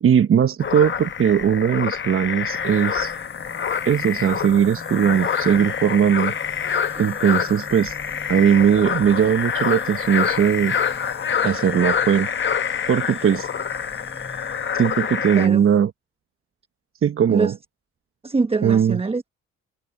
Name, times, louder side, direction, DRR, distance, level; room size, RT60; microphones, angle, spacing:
voice 1, 0.0-3.1 3.8-6.3 7.0-8.0 8.3-10.7 11.4-12.3 12.9-13.5 14.7-15.9 17.0-17.5 18.6-19.0, right 8 dB, 45° right, 1.1 m, -19 dB
sound 1, 0.6-15.5, left 7 dB, 40° left, 1.0 m, -26 dB
sound 2, 2.4-15.8, left 2 dB, 20° left, 6.2 m, -44 dB
voice 2, 15.4-15.7 17.3-17.5 18.2-19.3, right 4 dB, 20° right, 1.0 m, -24 dB
cardioid pair, 90°, 30 cm